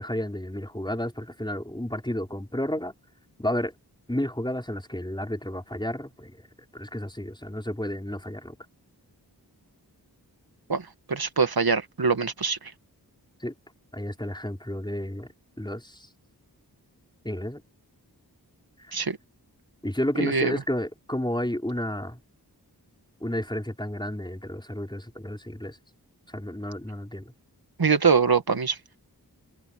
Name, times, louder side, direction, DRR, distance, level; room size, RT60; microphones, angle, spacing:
voice 1, 0.0-2.9 3.4-3.7 4.1-6.5 6.7-8.5 13.4-13.5 13.9-15.3 15.6-16.1 17.2-17.6 18.9-19.0 19.8-22.2 23.2-25.8 26.3-27.3, left 1 dB, 10° left, 4.7 m, -31 dB
voice 2, 10.7-12.6 18.9-19.2 20.2-20.5 27.8-28.8, right 5 dB, 65° right, 1.9 m, -23 dB
wide cardioid pair, 50°, 39 cm